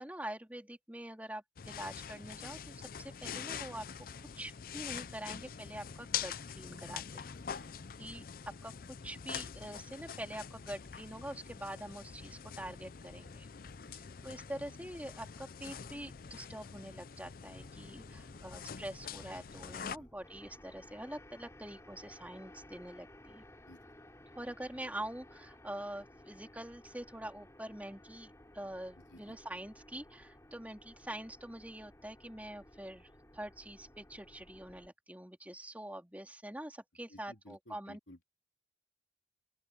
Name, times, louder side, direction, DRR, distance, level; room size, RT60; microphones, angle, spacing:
voice 1, 0.0-3.9 4.4-7.3 8.0-8.2 8.6-8.7 9.0-13.5 13.9-23.4 24.4-33.1 33.3-38.0, right 1 dB, 10° right, 3.6 m, -45 dB
sound 1, 1.6-20.0, left 7 dB, 50° left, 0.5 m, -45 dB
voice 2, 7.3-7.7 8.0-8.1 13.7-14.0 14.5-14.6 19.9-20.1 23.7-23.8 29.0-29.4 37.1-38.2, left 1 dB, 85° left, 3.6 m, -56 dB
sound 2, 17.5-34.9, left 1 dB, 15° left, 4.0 m, -57 dB
open air
head